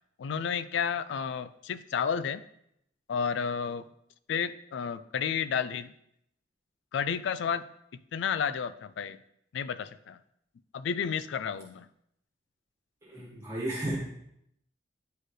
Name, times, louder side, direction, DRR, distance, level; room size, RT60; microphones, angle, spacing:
voice 1, 0.2-2.4 3.1-3.8 4.3-5.9 6.9-7.6 7.9-9.2 9.5-10.2 10.7-11.9, left 7 dB, 70° left, 15 dB, 0.3 m, -31 dB
voice 2, 13.0-14.0, right 1 dB, 15° right, -5 dB, 1.5 m, -33 dB
9.2 x 4.4 x 3.2 m, 0.75 s
head